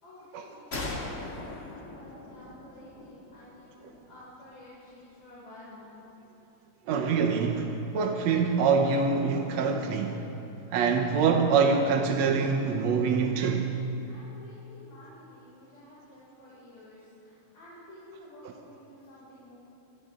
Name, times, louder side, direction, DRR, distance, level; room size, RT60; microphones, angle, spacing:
voice 1, 0.0-5.9 14.1-19.6, left 1 dB, 90° left, -9 dB, 7.6 m, -51 dB
sound 1, 0.7-4.2, left 2 dB, 30° left, 1.9 m, -39 dB
voice 2, 6.9-10.3 10.7-13.8, right 5 dB, 65° right, 3 dB, 2.1 m, -25 dB
29.5 x 27.0 x 3.8 m, 2.9 s
omnidirectional pair, 3.6 m